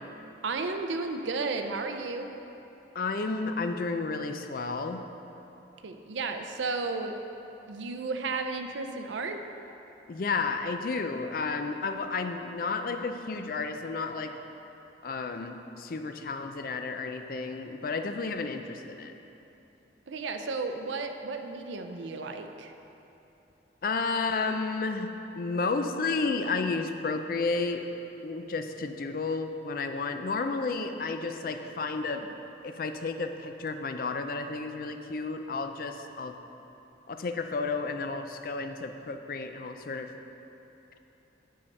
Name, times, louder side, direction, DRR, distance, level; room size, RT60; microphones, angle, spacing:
voice 1, 0.4-2.3 5.8-7.1 7.7-9.4 20.1-22.7, right 3 dB, 85° right, 5 dB, 0.5 m, -33 dB
voice 2, 2.9-5.0 10.1-14.4 15.0-19.1 23.8-25.1 25.4-27.9 28.2-32.2 32.6-36.3 37.1-40.1, left 4 dB, 50° left, 7 dB, 0.4 m, -32 dB
6.7 x 5.6 x 5.3 m, 3.0 s
head